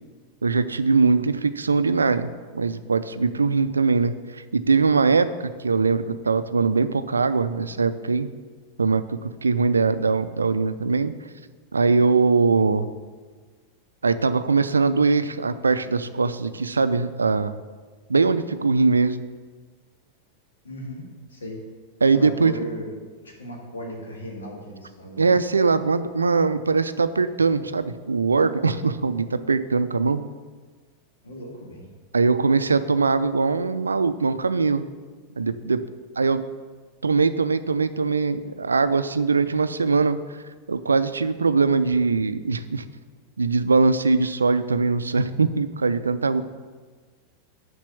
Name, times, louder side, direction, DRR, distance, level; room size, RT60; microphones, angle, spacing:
voice 1, 0.4-4.1 4.5-8.3 8.8-11.1 11.7-12.9 14.0-17.6 18.1-19.2 22.0-22.5 25.2-30.2 32.1-34.9 35.4-35.8 36.2-36.4 37.0-40.2 40.7-42.8 43.4-46.5, right 4 dB, 75° right, 13 dB, 0.4 m, -21 dB
voice 2, 20.6-21.6 22.1-22.9 23.2-25.4 31.2-31.9, equal, 70° left, -1 dB, 2.1 m, -36 dB
7.3 x 6.0 x 7.0 m, 1.5 s
figure-of-eight pair, 90°, 0 cm